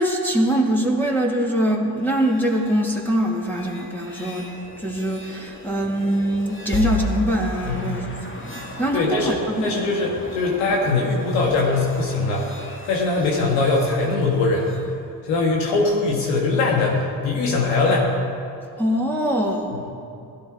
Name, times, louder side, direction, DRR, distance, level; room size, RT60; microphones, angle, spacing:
voice 1, 0.0-4.5 4.8-8.4 8.8-9.7 18.8-19.7, right 1 dB, 5° left, -3 dB, 2.8 m, -23 dB
sound 1, 2.0-14.9, left 2 dB, 25° left, 2.2 m, -35 dB
voice 2, 7.6-8.3 8.9-12.5 12.9-14.7 15.2-18.1, left 3 dB, 85° left, -2 dB, 1.9 m, -21 dB
16.5 x 13.0 x 5.0 m, 2.5 s
supercardioid pair, 55°, 44 cm